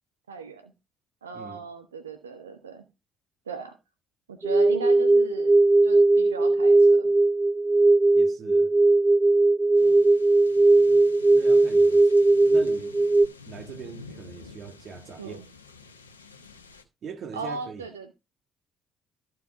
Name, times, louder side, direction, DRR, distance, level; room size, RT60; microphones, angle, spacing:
voice 1, 0.3-0.7 1.2-2.9 3.5-3.8 4.3-5.6 5.8-7.1 9.8-10.0 15.2-15.5 17.3-18.1, right 4 dB, 80° right, 0.8 m, -37 dB
sound 1, 4.4-13.3, right 2 dB, 20° right, 0.4 m, -19 dB
voice 2, 8.1-8.7 11.3-12.1 12.5-12.9 13.5-15.4 17.0-17.8, right 6 dB, 50° right, 1.7 m, -41 dB
sound 2, 9.8-16.8, left 4 dB, 85° left, 1.1 m, -48 dB
14.0 x 4.9 x 4.7 m
figure-of-eight pair, 45°, 0 cm